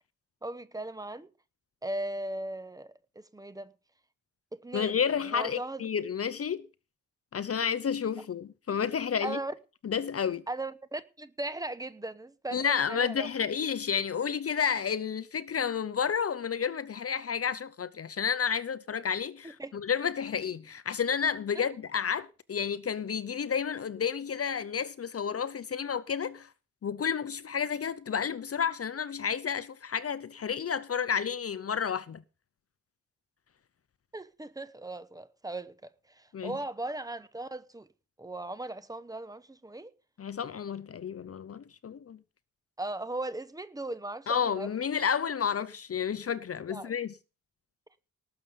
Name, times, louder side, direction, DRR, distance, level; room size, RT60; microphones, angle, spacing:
voice 1, 0.4-1.3 1.8-3.7 4.6-5.0 5.3-5.8 9.2-9.5 10.5-13.3 19.6-19.7 34.1-35.7 36.1-37.9 38.2-39.9 42.8-44.7 46.7-46.9, right 2 dB, 10° right, 1.0 m, -38 dB
voice 2, 4.7-6.7 7.3-9.4 9.8-10.4 12.5-26.5 26.8-32.2 36.3-36.6 40.2-42.2 44.3-47.1, left 7 dB, 45° left, 0.7 m, -31 dB
18.5 x 7.1 x 5.3 m
wide cardioid pair, 145°, 33 cm